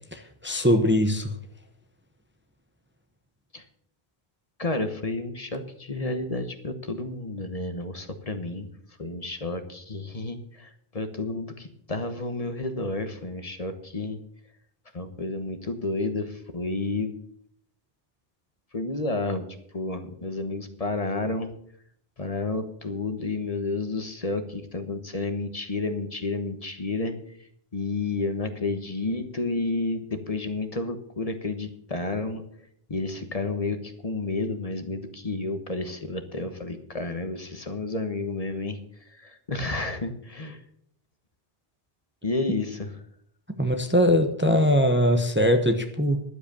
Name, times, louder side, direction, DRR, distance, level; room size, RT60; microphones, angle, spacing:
voice 1, 0.1-1.3 43.6-46.2, equal, 10° right, 6 dB, 0.9 m, -21 dB
voice 2, 4.6-8.7 9.0-14.2 14.9-17.1 18.7-19.5 19.7-21.5 22.2-27.1 27.7-32.4 32.9-38.8 39.1-40.6 42.2-43.0, left 2 dB, 35° left, 8 dB, 1.2 m, -31 dB
11.5 x 7.9 x 6.9 m, 0.67 s
omnidirectional pair, 1.0 m